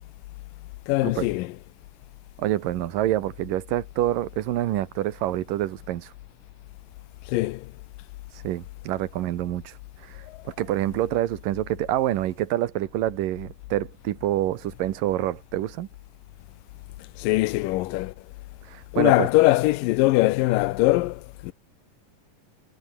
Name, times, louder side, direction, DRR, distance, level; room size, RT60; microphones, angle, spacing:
voice 1, 0.9-1.5 7.3-7.7 10.3-10.4 17.2-18.1 18.9-21.5, left 19 dB, 85° left, 2.3 m, -22 dB
voice 2, 2.4-6.1 8.4-9.7 10.0-15.9 18.7-19.3, right 13 dB, 85° right, 2.8 m, -27 dB
omnidirectional pair, 3.9 m